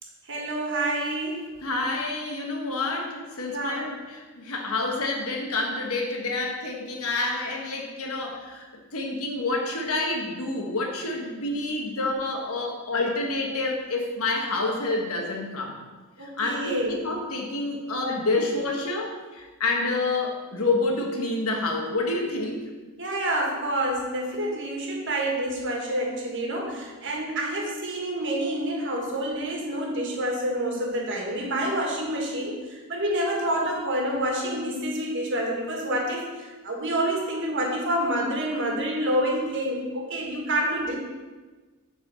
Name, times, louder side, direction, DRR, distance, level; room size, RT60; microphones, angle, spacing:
voice 1, 0.2-1.5 3.5-3.8 11.8-12.5 16.2-17.2 17.7-17.9 23.0-41.0, right 1 dB, 55° right, 0 dB, 1.6 m, -28 dB
voice 2, 1.6-15.7 16.2-22.6, left 2 dB, 70° left, 1 dB, 1.4 m, -28 dB
8.1 x 4.2 x 6.4 m, 1.3 s
head